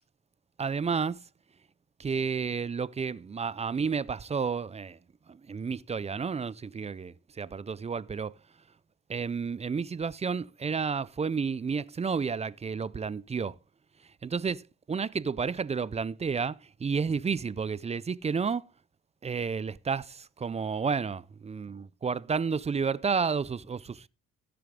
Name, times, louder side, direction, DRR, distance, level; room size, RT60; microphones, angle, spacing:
voice 1, 0.6-1.2 2.0-5.0 5.3-8.3 9.1-13.6 14.2-18.6 19.2-24.1, right 5 dB, 20° right, 0.4 m, -31 dB
15.5 x 6.9 x 3.7 m
cardioid pair, 90°, 30 cm